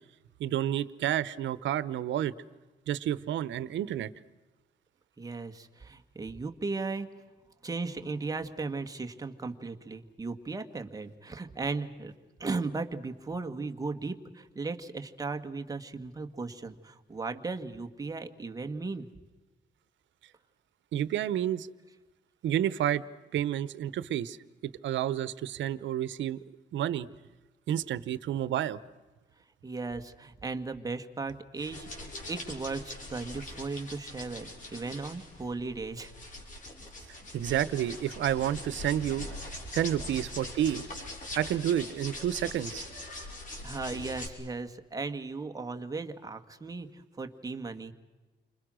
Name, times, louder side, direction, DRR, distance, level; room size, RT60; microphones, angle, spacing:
voice 1, 0.4-2.3 2.9-4.1 20.9-21.7 22.4-23.0 23.3-24.4 24.8-26.4 26.7-27.1 27.7-28.8 37.3-39.2 39.7-40.8 41.4-42.8, right 11 dB, 85° right, 17 dB, 1.0 m, -30 dB
voice 2, 5.2-7.1 7.6-19.1 29.6-36.1 43.6-47.9, right 3 dB, 20° right, 6 dB, 1.8 m, -36 dB
sound 1, 31.6-44.3, left 2 dB, 45° left, 6.1 m, -42 dB
30.0 x 26.0 x 6.4 m, 1.2 s
cardioid pair, 135°, 19 cm